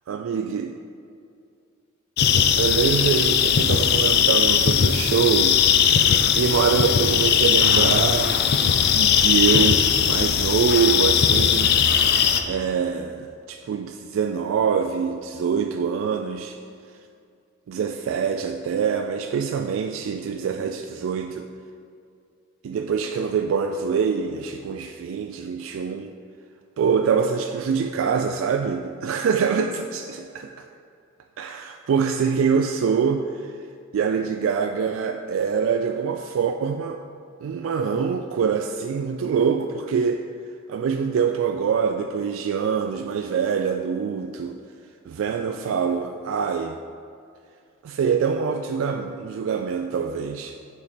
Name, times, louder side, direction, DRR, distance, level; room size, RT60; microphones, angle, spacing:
voice 1, 0.1-0.7 2.6-5.6 6.0-8.4 8.9-11.7 12.4-16.6 17.7-21.5 22.6-26.1 26.8-30.7 31.4-33.6 33.9-37.0 37.4-40.2 40.7-44.6 45.1-46.8 47.8-50.6, right 6 dB, 80° right, 5 dB, 0.3 m, -24 dB
sound 1, 2.2-12.4, left 8 dB, 55° left, 0.4 m, -19 dB
7.0 x 4.3 x 5.0 m, 2.4 s
head